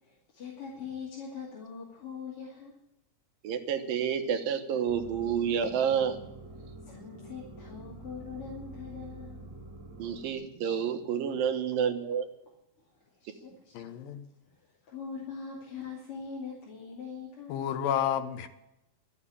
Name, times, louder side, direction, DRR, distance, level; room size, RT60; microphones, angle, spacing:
voice 1, 0.0-2.8 6.8-9.4 12.8-13.9 14.5-17.6, left 6 dB, 45° left, -5 dB, 3.2 m, -42 dB
voice 2, 3.4-6.2 10.0-12.3, right 7 dB, 85° right, 7 dB, 3.0 m, -29 dB
sound 1, 4.9-10.3, right 2 dB, 35° right, 2.4 m, -47 dB
voice 3, 13.7-14.2 17.5-18.5, left 9 dB, 90° left, 9 dB, 2.8 m, -30 dB
12.5 x 8.0 x 9.8 m, 0.86 s
omnidirectional pair, 3.9 m